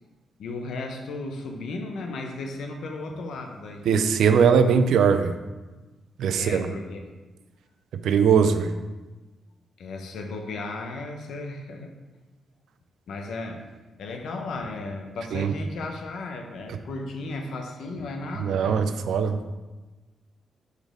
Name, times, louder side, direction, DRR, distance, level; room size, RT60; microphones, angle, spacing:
voice 1, 0.4-3.9 6.3-7.0 9.8-11.9 13.1-13.6 14.0-18.9, left 2 dB, 80° left, 3 dB, 0.7 m, -35 dB
voice 2, 3.9-5.3 6.2-6.7 8.0-8.7 15.3-15.5 18.4-19.4, right 6 dB, 80° right, 9 dB, 0.4 m, -20 dB
5.1 x 4.0 x 4.9 m, 1.2 s
cardioid pair, 105°, 0 cm